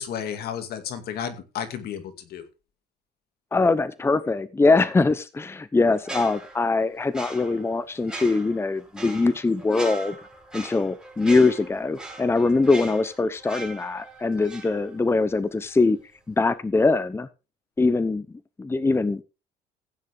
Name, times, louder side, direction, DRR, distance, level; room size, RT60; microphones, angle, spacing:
voice 1, 0.0-2.4, left 8 dB, 70° left, 2.3 m, -32 dB
voice 2, 3.5-10.2 10.5-16.0 16.3-17.3 17.8-18.3 18.6-19.2, left 3 dB, 15° left, 0.8 m, -22 dB
sound 1, 6.0-15.4 15.6-15.9, right 2 dB, 5° right, 6.0 m, -40 dB
15.0 x 9.6 x 3.5 m
cardioid pair, 110°, 17 cm